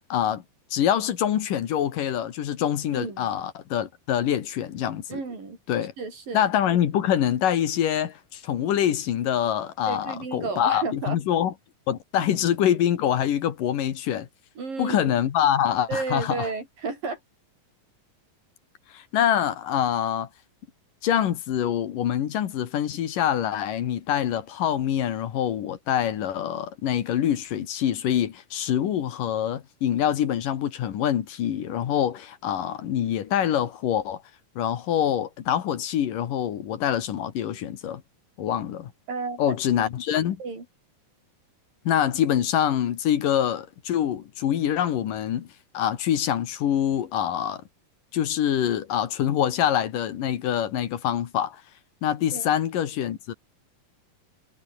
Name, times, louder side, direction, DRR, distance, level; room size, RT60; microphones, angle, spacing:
voice 1, 0.1-0.4 0.7-5.2 5.7-5.9 6.3-11.5 11.9-14.3 14.8-16.5 18.9-20.3 21.0-34.2 34.6-38.0 38.4-38.9 39.4-40.4 41.9-45.5 45.7-47.6 48.1-51.6 52.0-53.3, left 10 dB, 75° left, 3.3 m, -25 dB
voice 2, 2.9-3.3 5.1-5.6 6.0-6.4 9.9-11.2 14.6-15.1 15.9-17.2 39.1-39.4 39.8-39.9 40.4-40.6 52.3-52.5, right 4 dB, 80° right, 8.5 m, -32 dB
omnidirectional pair, 3.9 m